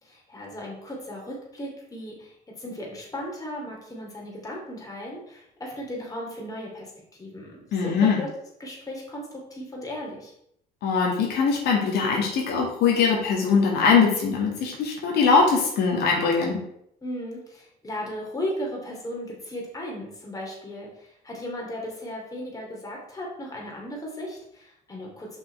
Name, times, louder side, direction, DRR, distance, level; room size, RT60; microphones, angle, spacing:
voice 1, 0.0-6.9 7.2-8.3 8.6-10.3 17.0-25.4, left 1 dB, 20° left, -2 dB, 2.6 m, -36 dB
voice 2, 7.7-8.2 10.8-16.6, left 5 dB, 80° left, -1 dB, 2.0 m, -21 dB
5.9 x 5.6 x 4.4 m, 0.74 s
cardioid pair, 110°, 17 cm